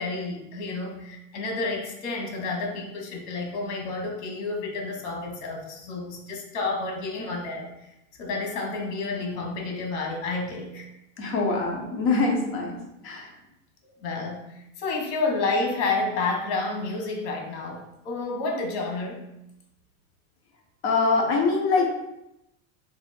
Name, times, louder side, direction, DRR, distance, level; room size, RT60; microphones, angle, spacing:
voice 1, 0.0-7.7 8.2-10.9 14.0-14.4 14.8-19.2, left 3 dB, 70° left, 2 dB, 1.2 m, -30 dB
voice 2, 11.2-12.8 13.0-13.3 20.8-21.9, left 3 dB, 35° left, 0 dB, 0.8 m, -23 dB
3.4 x 2.6 x 4.2 m, 0.85 s
supercardioid pair, 165°, 37 cm